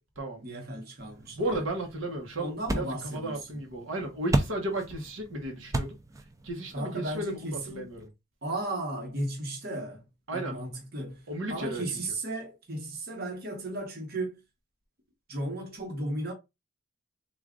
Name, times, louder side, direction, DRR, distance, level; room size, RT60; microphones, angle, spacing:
voice 1, 0.4-1.6 2.4-3.4 6.7-7.9 8.4-10.0 10.3-11.2 11.5-14.4 15.3-16.3, right 1 dB, 50° right, 1.1 m, -35 dB
sound 1, 1.0-8.1, right 2 dB, 15° right, 0.4 m, -36 dB
voice 2, 1.3-6.0 6.4-8.1 10.3-10.6 11.3-12.0, right 1 dB, 75° right, 1.0 m, -34 dB
3.5 x 2.5 x 3.7 m
head